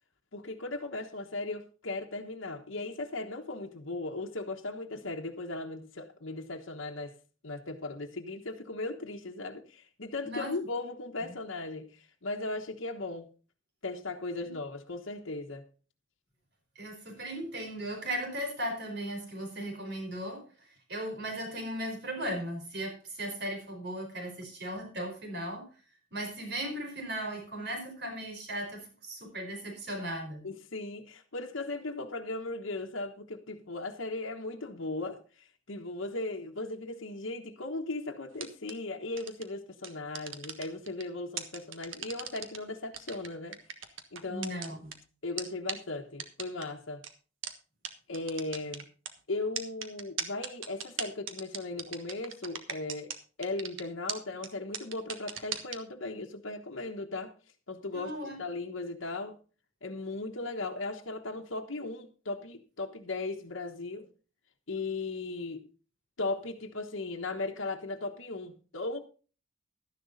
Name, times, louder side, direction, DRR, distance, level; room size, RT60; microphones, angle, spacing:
voice 1, 0.3-7.1 7.4-13.3 13.8-15.7 30.4-44.7 45.2-47.0 48.1-48.9 49.3-57.3 57.7-58.1 58.4-59.4 59.8-64.1 64.7-65.6 66.2-69.0, left 2 dB, 75° left, 1.2 m, -37 dB
voice 2, 16.7-25.7 26.1-30.4 44.3-44.9 57.9-58.4, right 1 dB, 55° right, 4.7 m, -37 dB
sound 1, 38.3-38.7 39.2-39.4 39.8-41.0 41.4-42.6 42.9-44.9 45.4-45.5 45.7-45.8 46.2-46.6 47.0-47.1 47.4-47.5 47.8-47.9 48.1-49.1 49.6-53.2 53.4-53.8 54.1-54.2 54.4-54.5 54.7-55.8, right 8 dB, 75° right, 1.5 m, -37 dB
13.0 x 10.5 x 4.0 m
head